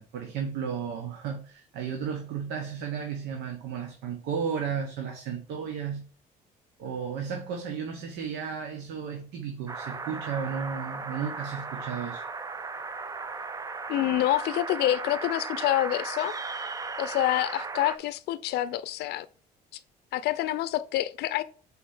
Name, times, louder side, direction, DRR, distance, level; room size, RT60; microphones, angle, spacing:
voice 1, 0.0-6.0 6.8-12.2, right 7 dB, 80° right, 1.0 m, -34 dB
sound 1, 9.7-18.0, right 4 dB, 20° right, 0.5 m, -36 dB
voice 2, 13.9-16.3 17.0-19.3 20.1-21.4, left 14 dB, 75° left, 0.5 m, -27 dB
4.3 x 4.2 x 5.4 m
cardioid pair, 110°, 17 cm